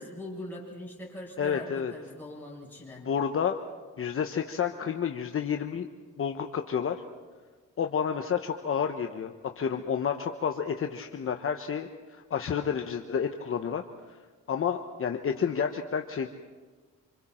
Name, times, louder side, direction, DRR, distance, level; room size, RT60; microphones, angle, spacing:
voice 1, 0.0-3.1, left 1 dB, 5° left, -5 dB, 7.0 m, -41 dB
voice 2, 1.4-1.9 3.0-3.6 4.0-5.9 6.2-7.0 7.8-14.2 14.5-16.3, left 7 dB, 45° left, 5 dB, 1.1 m, -30 dB
27.5 x 26.0 x 4.5 m, 1.4 s
cardioid pair, 125°, 31 cm